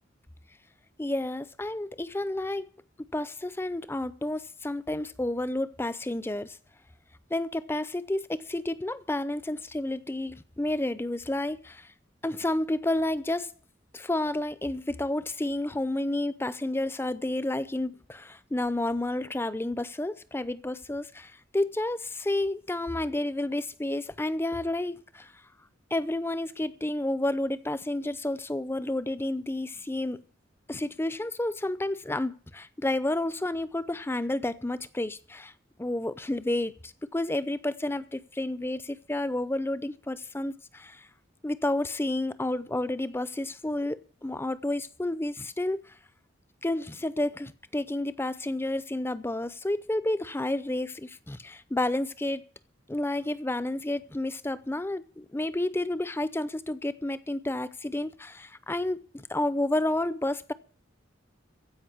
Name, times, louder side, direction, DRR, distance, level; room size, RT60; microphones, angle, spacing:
voice 1, 1.0-2.7 3.1-6.6 7.3-11.9 12.2-13.5 13.9-25.3 25.9-30.2 30.7-35.5 35.8-41.1 41.4-45.8 46.6-52.4 52.9-60.5, left 1 dB, 10° left, 0.6 m, -30 dB
15.5 x 5.4 x 9.5 m
head